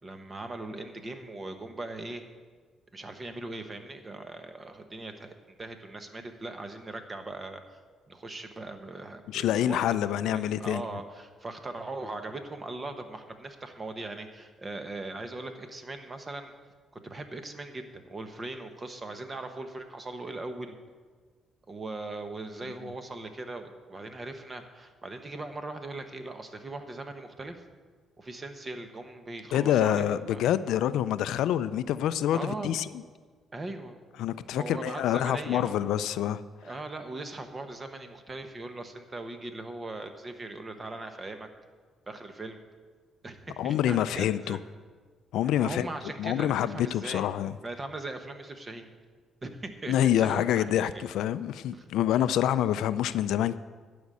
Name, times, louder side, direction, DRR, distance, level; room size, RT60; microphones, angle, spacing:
voice 1, 0.0-2.2 2.9-5.3 5.6-7.8 8.1-10.0 10.3-16.5 16.9-20.8 21.7-27.6 28.2-30.4 32.3-32.8 33.5-34.0 34.5-35.8 36.6-41.5 42.1-42.6 43.2-44.6 45.6-47.3 47.6-48.9 49.4-51.0 51.7-51.9 52.1-52.2, right 2 dB, 30° right, 7 dB, 1.2 m, -39 dB
voice 2, 9.3-10.8 29.5-32.9 34.2-36.4 43.6-44.6 45.3-45.9 46.2-47.5 49.9-53.6, left 11 dB, 85° left, 14 dB, 0.4 m, -26 dB
11.5 x 5.2 x 8.5 m, 1.5 s
cardioid pair, 90°, 0 cm